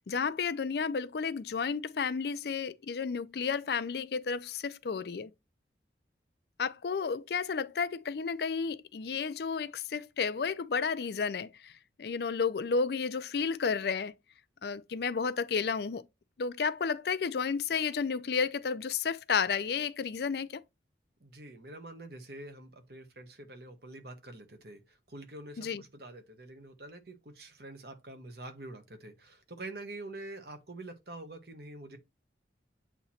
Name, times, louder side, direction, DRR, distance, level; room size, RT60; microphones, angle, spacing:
voice 1, 0.1-5.3 6.6-11.7 12.0-14.1 14.6-16.0 16.4-20.6 25.6-25.8, left 5 dB, 60° left, 0.4 m, -32 dB
voice 2, 21.2-32.0, right 2 dB, 55° right, 1.2 m, -46 dB
8.1 x 3.0 x 4.1 m
head